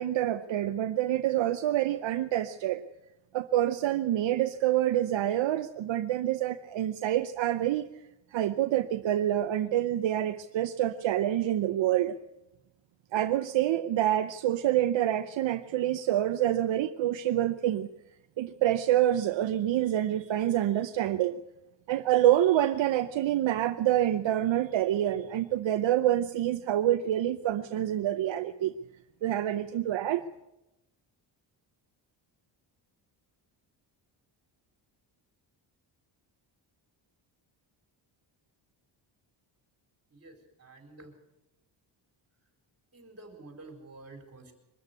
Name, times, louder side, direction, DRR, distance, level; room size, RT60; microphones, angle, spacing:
voice 1, 0.0-2.8 3.3-7.9 8.3-12.2 13.1-17.9 18.4-21.4 21.9-28.7 29.2-30.2, right 12 dB, 70° right, 9 dB, 0.8 m, -27 dB
voice 2, 40.6-41.1 42.9-44.5, right 2 dB, 30° right, 4 dB, 4.4 m, -49 dB
23.5 x 13.5 x 8.2 m, 0.95 s
cardioid pair, 145°, 47 cm